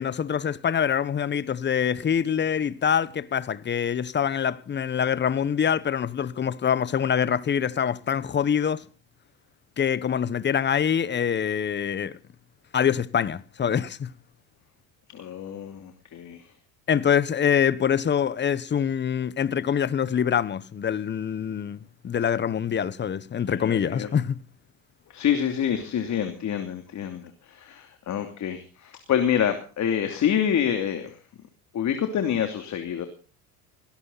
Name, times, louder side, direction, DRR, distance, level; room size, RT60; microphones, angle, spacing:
voice 1, 0.0-8.8 9.8-12.2 12.7-14.1 16.9-24.4, left 8 dB, 25° left, 1.1 m, -25 dB
voice 2, 15.1-16.5 23.5-24.1 25.1-31.2 31.7-33.1, left 9 dB, 40° left, 2.9 m, -27 dB
19.5 x 18.0 x 4.1 m
supercardioid pair, 110°, 42 cm